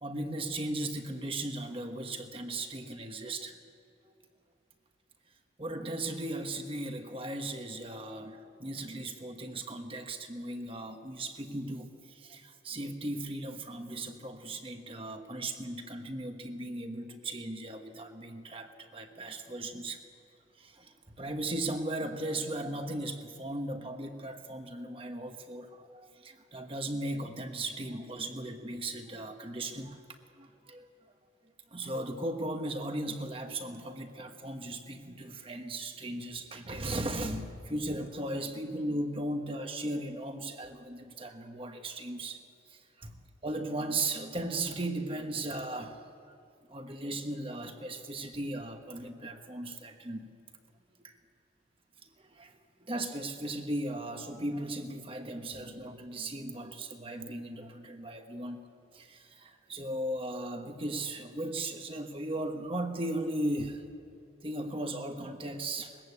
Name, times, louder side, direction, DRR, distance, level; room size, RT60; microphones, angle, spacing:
voice 1, 0.0-3.6 5.6-20.0 20.6-30.0 30.4-30.9 31.7-42.4 43.0-43.1 43.4-46.0 46.7-50.3 51.0-51.1 52.3-52.5 52.9-58.6 58.9-63.8 64.4-66.0, right 1 dB, 30° right, 6 dB, 1.2 m, -37 dB
21.5 x 15.0 x 8.5 m, 2.6 s
head